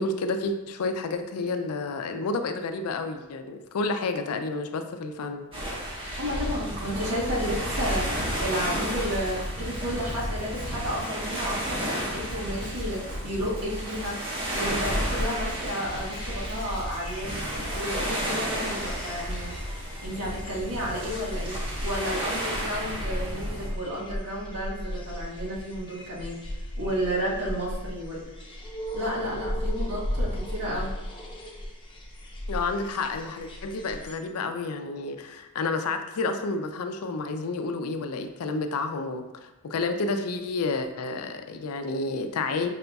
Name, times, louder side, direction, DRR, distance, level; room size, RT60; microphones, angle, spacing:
voice 1, 0.0-5.5 32.5-42.7, left 3 dB, 70° left, 7 dB, 0.4 m, -30 dB
sound 1, 5.5-23.7, equal, 25° right, 1.1 m, -32 dB
voice 2, 6.2-14.2 14.5-17.4 17.7-19.5 20.0-26.4 26.8-28.2 28.9-30.9, equal, 85° right, -5 dB, 1.3 m, -32 dB
Drum kit, 8.1-18.3, equal, 55° right, 1.1 m, -43 dB
sound 2, 15.0-34.1, equal, 25° left, 0.7 m, -36 dB
4.8 x 3.9 x 2.3 m, 1.0 s
head